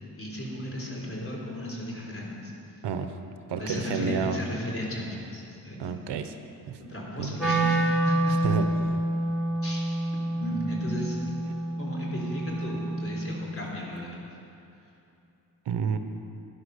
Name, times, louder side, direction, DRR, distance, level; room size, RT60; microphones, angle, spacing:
voice 1, 0.2-2.5 3.5-5.8 6.9-8.4 9.6-9.9 10.4-11.2 11.8-14.2, equal, 35° left, -3 dB, 3.8 m, -35 dB
voice 2, 3.5-4.4 5.8-6.3 6.7-6.8 7.2-7.3 8.4-8.7 15.7-16.0, right 6 dB, 85° right, 8 dB, 0.9 m, -29 dB
Wind instrument woodwind instrument, 7.4-13.4, right 1 dB, ahead, 2.7 m, -28 dB
11.5 x 10.5 x 6.5 m, 2.8 s
cardioid pair, 75°, 40 cm